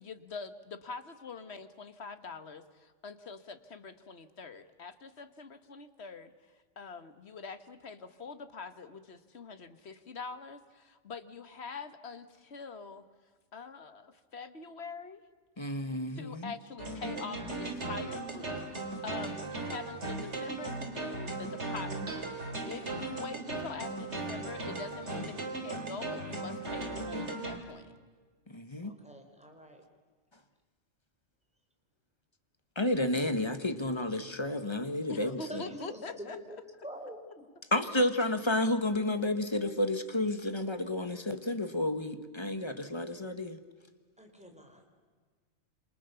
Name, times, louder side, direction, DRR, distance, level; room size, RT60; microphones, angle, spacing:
voice 1, 0.0-6.3 6.8-13.0 13.5-15.2 16.1-27.9 35.1-36.6, left 4 dB, 55° left, 11 dB, 1.7 m, -44 dB
voice 2, 15.6-16.5 28.5-28.9 32.7-35.6 37.7-43.6, left 1 dB, 20° left, 9 dB, 1.5 m, -31 dB
sound 1, 16.8-27.6, right 2 dB, 60° right, 3.5 m, -37 dB
voice 3, 28.8-29.8 35.2-37.2 44.2-44.9, equal, 5° right, 4 dB, 4.0 m, -46 dB
28.0 x 27.0 x 7.0 m, 1.5 s
omnidirectional pair, 1.3 m